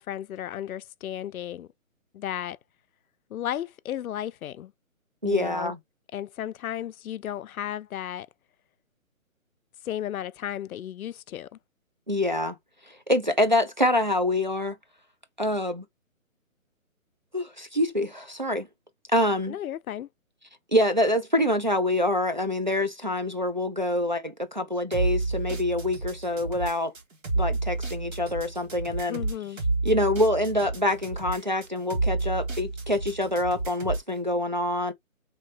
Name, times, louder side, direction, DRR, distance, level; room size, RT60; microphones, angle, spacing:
voice 1, 0.0-1.7 2.1-2.6 3.3-4.7 5.2-5.7 6.1-8.3 9.8-11.5 19.5-20.1 29.1-29.6, left 11 dB, 85° left, 0.5 m, -34 dB
voice 2, 5.2-5.8 12.1-12.6 12.9-14.8 15.4-15.9 17.3-18.7 19.1-19.6 20.7-26.9 27.4-29.2 29.8-34.9, left 1 dB, 35° right, 0.4 m, -26 dB
sound 1, 24.9-34.1, right 3 dB, 65° right, 1.9 m, -30 dB
3.1 x 3.0 x 3.2 m
hypercardioid pair, 175°, 41 cm